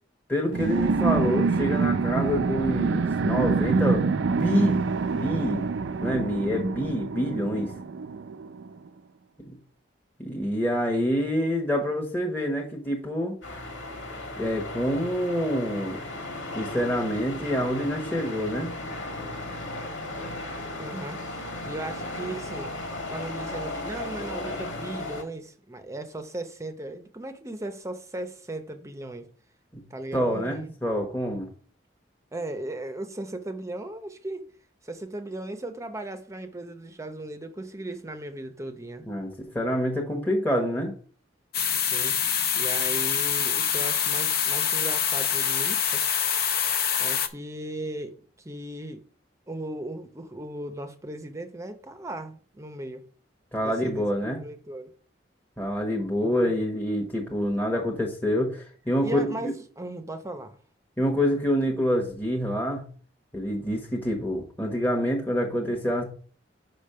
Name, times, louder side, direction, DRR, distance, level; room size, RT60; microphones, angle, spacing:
voice 1, 0.3-4.8 5.1-5.7 6.0-7.7 9.5-9.6 10.2-13.3 14.3-16.0 16.5-18.7 29.7-29.8 30.1-31.5 39.1-40.9 53.5-54.4 55.6-59.5 61.0-62.8 63.3-66.0, equal, 10° left, 1.0 m, -27 dB
sound 1, 0.5-8.7, right 4 dB, 85° right, 0.4 m, -26 dB
sound 2, 13.4-25.2, left 2 dB, 80° left, 1.9 m, -36 dB
voice 2, 20.8-22.7 23.1-29.3 29.9-30.7 32.3-34.5 34.8-39.1 41.7-46.0 47.0-49.0 49.5-53.0 53.6-54.9 56.2-56.5 59.0-60.6, right 1 dB, 15° right, 0.7 m, -37 dB
sound 3, 41.5-47.3, left 8 dB, 55° left, 0.6 m, -25 dB
5.6 x 5.2 x 5.5 m
head